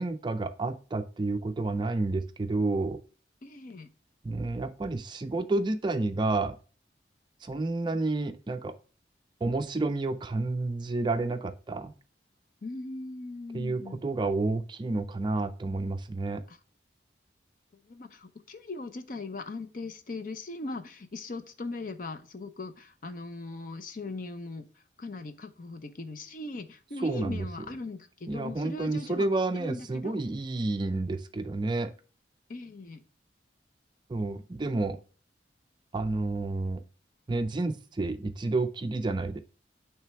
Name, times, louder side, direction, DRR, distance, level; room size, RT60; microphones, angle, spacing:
voice 1, 0.0-3.0 4.2-6.6 7.4-8.7 9.4-11.9 13.5-16.4 27.0-27.4 28.3-31.9 34.1-35.0 35.9-36.8 37.3-39.4, right 2 dB, 25° right, 9 dB, 0.4 m, -30 dB
voice 2, 3.4-3.9 12.6-14.0 16.5-16.6 17.8-24.6 25.0-29.3 29.5-30.2 32.5-33.0, left 2 dB, 50° left, 9 dB, 0.6 m, -39 dB
8.9 x 3.3 x 3.3 m, 0.37 s
head